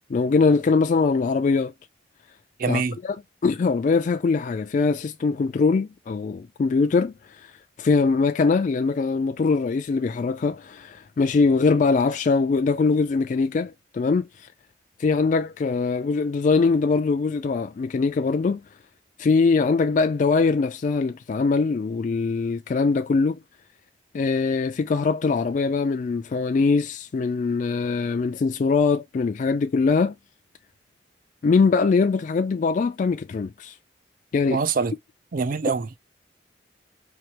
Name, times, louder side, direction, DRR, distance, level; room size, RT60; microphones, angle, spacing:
voice 1, 0.1-1.7 2.7-3.2 3.4-7.5 7.8-14.5 15.0-18.6 19.2-23.4 24.1-30.1 31.4-33.8 34.3-34.6, left 4 dB, 45° left, 0.3 m, -22 dB
voice 2, 2.6-3.0 34.5-34.9 35.3-36.0, right 5 dB, 50° right, 0.4 m, -24 dB
4.6 x 2.8 x 2.8 m
head